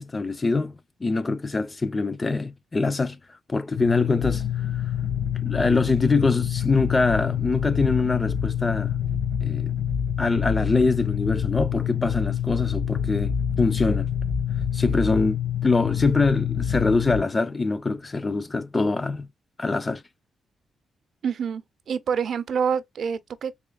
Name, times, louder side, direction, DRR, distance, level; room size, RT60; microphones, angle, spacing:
voice 1, 0.0-3.2 3.5-4.4 4.7-4.8 5.4-8.9 9.4-9.7 10.2-13.3 13.6-14.1 14.7-19.3 19.6-20.0, left 3 dB, 25° left, 0.4 m, -24 dB
sound 1, 3.8-17.2, left 8 dB, 60° left, 1.0 m, -26 dB
voice 2, 21.2-21.6 21.9-23.5, right 6 dB, 65° right, 0.5 m, -26 dB
3.5 x 3.1 x 2.2 m
cardioid pair, 80°, 0 cm